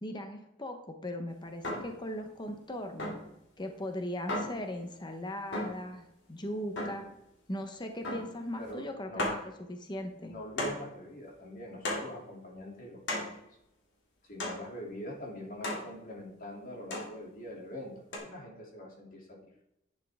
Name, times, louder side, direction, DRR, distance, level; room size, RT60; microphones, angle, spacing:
voice 1, 0.0-3.1 3.6-7.1 7.5-9.4 9.7-10.3, left 1 dB, 20° left, 5 dB, 1.0 m, -38 dB
sound 1, 1.6-2.0 3.0-3.3 4.3-4.6 5.5-5.9 6.8-7.1 8.0-8.4 8.7-8.8 9.2-9.5 10.6-10.9 11.8-12.2 13.1-13.4 14.4-14.7 15.6-15.9 16.9-17.2 18.1-18.2, left 1 dB, 60° left, 2.9 m, -35 dB
voice 2, 8.6-9.3 10.3-13.3 14.2-19.4, equal, 45° left, -1 dB, 3.0 m, -43 dB
11.0 x 8.5 x 3.6 m, 0.82 s
head